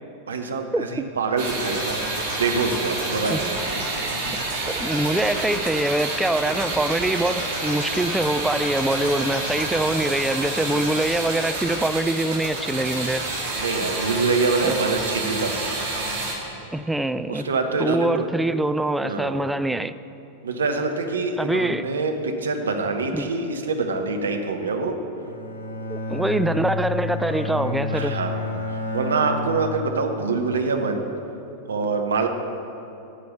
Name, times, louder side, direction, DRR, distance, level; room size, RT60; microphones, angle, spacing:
voice 1, 0.3-2.0 2.4-3.8 9.6-9.8 10.7-10.8 13.5-15.8 17.3-18.3 19.0-19.4 20.4-25.0 27.9-28.4 28.9-31.1 31.7-32.3, right 4 dB, 70° right, 0.9 m, -25 dB
sound 1, 1.4-16.3, right 2 dB, 55° right, 2.4 m, -28 dB
voice 2, 4.8-13.3 14.6-14.8 16.7-17.5 17.8-19.9 21.4-21.8 23.1-23.3 25.9-28.2, right 1 dB, 5° right, 0.3 m, -24 dB
Bowed string instrument, 25.2-30.4, left 2 dB, 80° left, 1.9 m, -30 dB
9.1 x 6.8 x 7.2 m
figure-of-eight pair, 90°, 0 cm